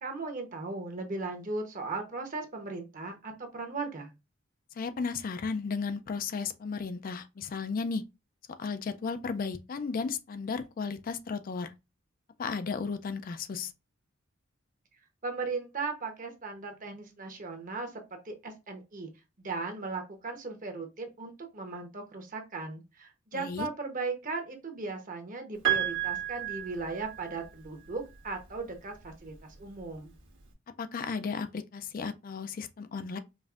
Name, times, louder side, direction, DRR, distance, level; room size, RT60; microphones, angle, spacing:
voice 1, 0.0-4.1 15.2-19.1 19.4-30.1, right 3 dB, 45° right, 1.0 m, -37 dB
voice 2, 4.8-8.0 8.6-11.7 12.4-13.7 23.3-23.7 30.8-33.2, left 5 dB, 45° left, 0.4 m, -34 dB
Piano, 25.6-27.6 28.9-29.0, right 11 dB, 65° right, 1.3 m, -31 dB
5.2 x 2.5 x 2.4 m
head